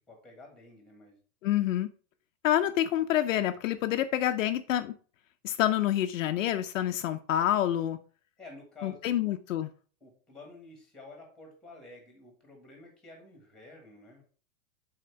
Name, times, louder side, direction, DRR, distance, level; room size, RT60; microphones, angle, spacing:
voice 1, 0.1-1.2 8.4-9.3 10.0-14.2, left 2 dB, ahead, 2 dB, 1.4 m, -50 dB
voice 2, 1.4-1.9 2.4-4.9 5.4-8.0 8.8-9.7, left 12 dB, 60° left, 8 dB, 0.6 m, -27 dB
7.7 x 4.3 x 4.6 m, 0.41 s
supercardioid pair, 180°, 44 cm